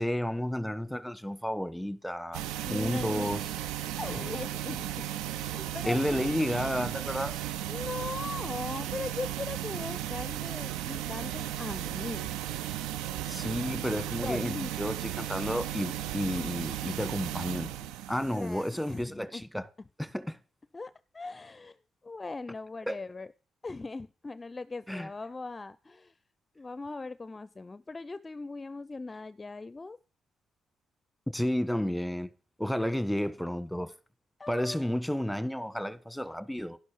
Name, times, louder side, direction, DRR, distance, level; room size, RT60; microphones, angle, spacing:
voice 1, 0.0-2.4 2.7-3.4 5.9-7.4 13.3-19.6 20.0-20.4 22.9-23.0 24.9-25.1 31.3-32.3 32.6-33.9 34.5-36.8, equal, 5° left, 1.4 m, -31 dB
sound 1, 2.3-19.0, right 12 dB, 80° right, 0.6 m, -35 dB
voice 2, 2.6-3.4 4.0-5.1 5.4-6.3 7.7-12.3 14.2-14.7 18.3-19.4 20.7-21.8 22.0-23.3 23.6-26.2 26.6-30.0 32.8-33.0 34.4-34.9, left 3 dB, 30° left, 0.5 m, -39 dB
11.5 x 11.0 x 5.0 m
hypercardioid pair, 50°, 0 cm